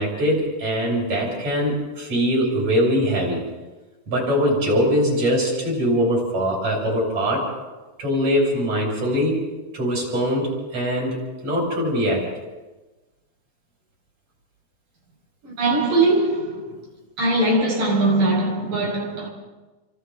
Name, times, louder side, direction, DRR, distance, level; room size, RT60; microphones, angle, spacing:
voice 1, 0.0-3.4 4.1-7.5 8.0-9.4 9.7-11.2 11.4-12.3, equal, 55° right, 8.9 m, -22 dB
voice 2, 15.4-16.6 17.2-19.3, right 2 dB, 85° right, 7.6 m, -21 dB
29.5 x 25.0 x 4.0 m
omnidirectional pair, 3.7 m